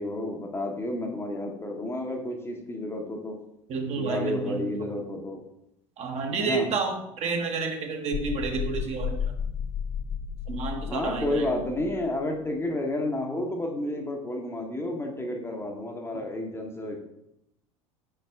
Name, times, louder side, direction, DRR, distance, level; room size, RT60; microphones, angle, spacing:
voice 1, 0.0-3.4 4.0-5.4 6.4-6.7 10.9-17.0, left 1 dB, 15° left, 2 dB, 0.9 m, -31 dB
voice 2, 3.7-4.6 6.0-9.2 10.5-11.4, right 4 dB, 40° right, 3 dB, 1.1 m, -30 dB
sound 1, 8.1-12.1, left 7 dB, 35° left, 0.4 m, -33 dB
5.7 x 5.1 x 3.4 m, 0.81 s
figure-of-eight pair, 75°, 17 cm